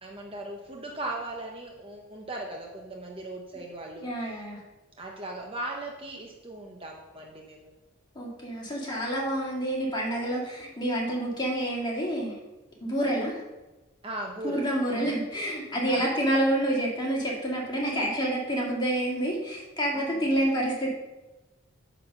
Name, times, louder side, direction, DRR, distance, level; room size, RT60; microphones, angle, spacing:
voice 1, 0.0-4.1 5.0-7.7 14.0-15.2 15.9-16.1 19.9-20.2, right 2 dB, 25° right, 0 dB, 0.8 m, -38 dB
voice 2, 4.0-4.6 8.2-12.3 12.8-13.4 14.4-20.9, right 1 dB, 20° left, -3 dB, 2.0 m, -28 dB
9.5 x 4.0 x 6.3 m, 1.1 s
head